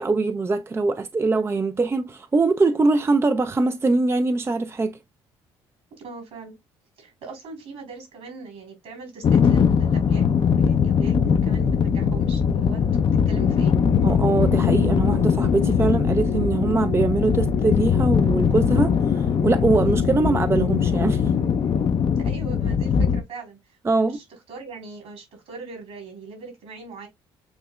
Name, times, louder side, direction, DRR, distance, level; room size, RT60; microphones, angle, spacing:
voice 1, 0.0-5.0 14.0-21.3 23.8-24.2, right 3 dB, 20° right, 0.4 m, -22 dB
voice 2, 6.0-6.5 7.0-13.8 22.2-23.6 23.9-27.1, right 4 dB, 65° right, 3.3 m, -40 dB
sound 1, 9.2-23.2, left 7 dB, 45° left, 0.5 m, -21 dB
sound 2, 13.3-21.9, left 5 dB, 80° left, 1.2 m, -32 dB
7.9 x 2.8 x 2.2 m
hypercardioid pair, 55°, 12 cm